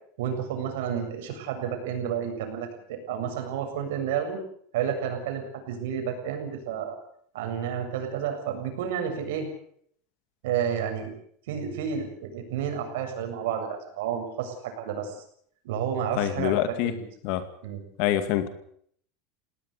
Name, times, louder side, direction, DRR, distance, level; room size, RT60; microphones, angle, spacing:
voice 1, 0.2-4.4 4.7-7.0 7.3-9.5 10.4-11.1 11.5-15.2 15.6-17.0 17.6-17.8, right 8 dB, 80° right, 5 dB, 7.4 m, -31 dB
voice 2, 16.2-16.9 17.2-17.4 18.0-18.5, left 12 dB, 50° left, 11 dB, 2.3 m, -25 dB
20.5 x 18.5 x 8.1 m, 0.64 s
supercardioid pair, 170°, 0 cm